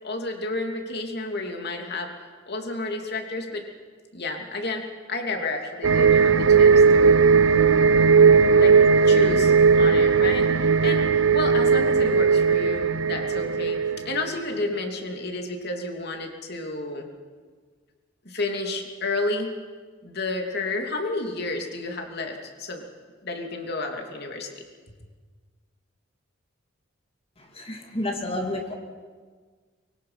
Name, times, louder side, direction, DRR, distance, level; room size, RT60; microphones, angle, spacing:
voice 1, 0.0-2.1 2.5-3.6 4.1-7.1 8.5-8.8 9.0-13.8 14.0-17.0 18.2-19.6 20.0-22.8 23.2-24.5, left 2 dB, 55° left, 3 dB, 3.0 m, -31 dB
sound 1, 5.8-14.3 14.6-14.7, right 5 dB, 80° right, 0.6 m, -18 dB
voice 2, 27.6-28.8, left 1 dB, 30° left, 2 dB, 2.5 m, -30 dB
24.0 x 23.5 x 5.8 m, 1.5 s
head